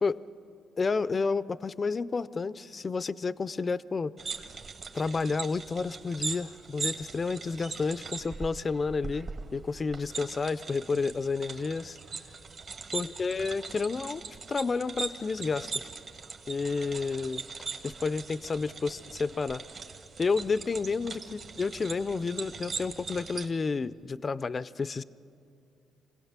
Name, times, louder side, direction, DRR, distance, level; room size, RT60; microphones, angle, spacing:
voice 1, 0.8-4.1 4.9-12.0 12.9-14.2 14.5-15.7 16.5-17.4 17.8-19.6 20.2-25.0, left 4 dB, 35° left, 17 dB, 0.5 m, -30 dB
sound 1, 4.2-23.5, right 4 dB, 50° right, 1.7 m, -40 dB
26.5 x 17.0 x 7.4 m, 2.5 s
cardioid pair, 90°, 0 cm